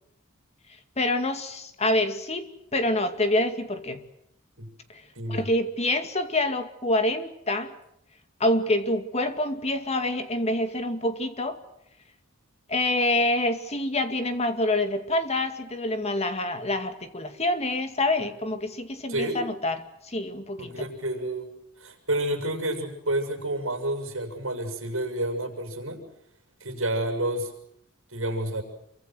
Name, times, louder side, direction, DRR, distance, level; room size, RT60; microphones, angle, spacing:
voice 1, 1.0-4.0 4.9-5.0 5.3-7.8 8.4-11.6 12.7-20.8, left 1 dB, 30° left, 2.3 m, -26 dB
voice 2, 5.2-5.5 19.1-19.4 20.6-21.5 21.8-26.0 26.6-27.5 28.1-28.6, right 1 dB, 70° right, 6.8 m, -29 dB
28.0 x 24.0 x 7.9 m
head